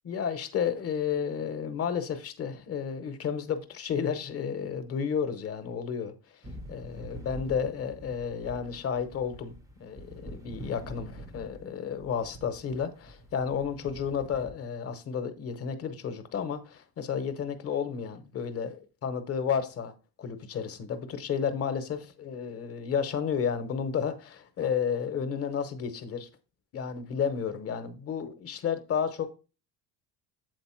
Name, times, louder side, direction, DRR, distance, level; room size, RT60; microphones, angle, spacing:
voice 1, 0.0-19.9 20.2-26.3 26.7-29.3, left 7 dB, 30° left, 0.8 m, -32 dB
sound 1, 6.4-14.5, right 1 dB, 10° right, 0.4 m, -46 dB
7.8 x 4.1 x 4.3 m
cardioid pair, 175°, 44 cm